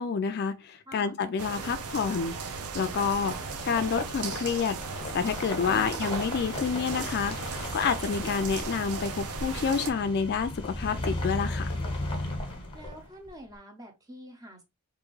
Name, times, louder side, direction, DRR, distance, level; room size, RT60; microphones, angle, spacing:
voice 1, 0.0-2.3 2.7-3.3 3.6-4.8 5.1-11.7, left 5 dB, 45° left, 0.4 m, -28 dB
sound 1, 1.4-9.9, right 5 dB, 80° right, 0.6 m, -37 dB
sound 2, 2.5-13.3, left 1 dB, 25° left, 1.0 m, -36 dB
voice 2, 5.6-6.2 12.7-14.6, right 1 dB, 15° right, 0.8 m, -46 dB
3.6 x 2.6 x 3.1 m
head